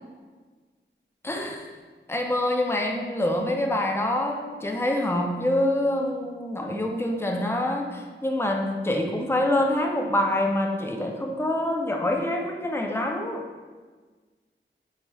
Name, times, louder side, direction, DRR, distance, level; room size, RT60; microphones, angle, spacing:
voice 1, 1.2-1.7 2.1-13.4, left 1 dB, 10° left, 2 dB, 0.3 m, -26 dB
3.2 x 2.8 x 2.2 m, 1.4 s
wide cardioid pair, 55°, 20 cm